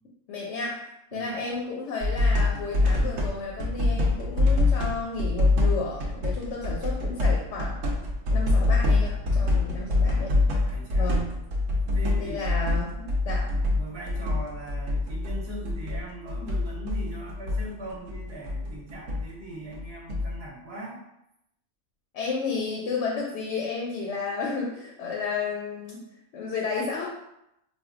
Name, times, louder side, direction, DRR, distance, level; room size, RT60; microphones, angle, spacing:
voice 1, 0.3-7.8 8.3-10.4 10.9-11.4 12.2-13.5 16.3-16.5 22.1-26.0 26.3-27.1, left 4 dB, 70° left, -2 dB, 0.8 m, -32 dB
sound 1, 2.0-3.3 3.6-16.0 16.3-19.2 19.5-20.4, left 2 dB, 75° right, 0.9 m, -25 dB
voice 2, 10.6-11.2 11.8-12.7 13.5-21.0, right 1 dB, 55° right, -4 dB, 1.0 m, -40 dB
4.3 x 2.1 x 2.4 m, 0.84 s
omnidirectional pair, 1.4 m